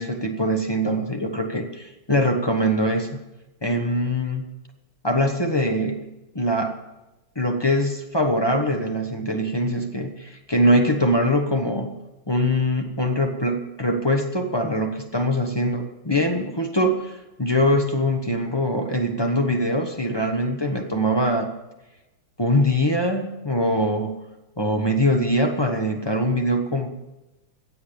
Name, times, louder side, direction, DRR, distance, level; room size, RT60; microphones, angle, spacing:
voice 1, 0.0-3.2 3.6-4.5 5.0-6.1 6.3-6.8 7.3-12.0 12.3-21.5 22.4-24.2 24.6-26.9, equal, 20° left, 3 dB, 0.6 m, -23 dB
15.5 x 7.8 x 7.1 m, 1.0 s
omnidirectional pair, 2.4 m